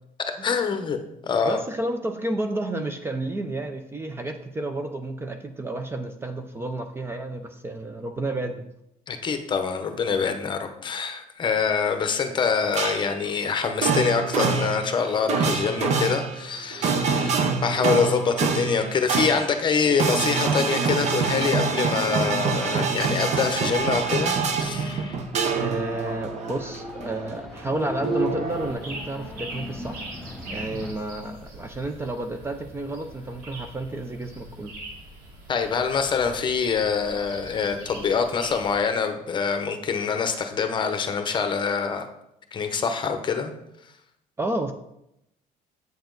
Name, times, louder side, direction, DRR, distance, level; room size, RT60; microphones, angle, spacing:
voice 1, 0.4-1.0 1.2-1.6 9.1-25.2 35.5-42.1 42.5-43.5, left 5 dB, 30° left, 7 dB, 0.9 m, -25 dB
voice 2, 1.5-8.7 12.2-12.3 25.6-30.0 30.5-34.7 44.4-44.7, right 2 dB, 15° right, 6 dB, 0.5 m, -31 dB
sound 1, 12.7-13.3 13.7-27.7 28.0-28.7, right 5 dB, 50° right, 0.8 m, -26 dB
sound 2, 23.7-30.9, left 1 dB, ahead, 1.0 m, -38 dB
sound 3, 28.5-38.8, right 1 dB, 70° right, 2.2 m, -42 dB
8.0 x 6.9 x 3.9 m, 0.82 s
cardioid pair, 155°, 15 cm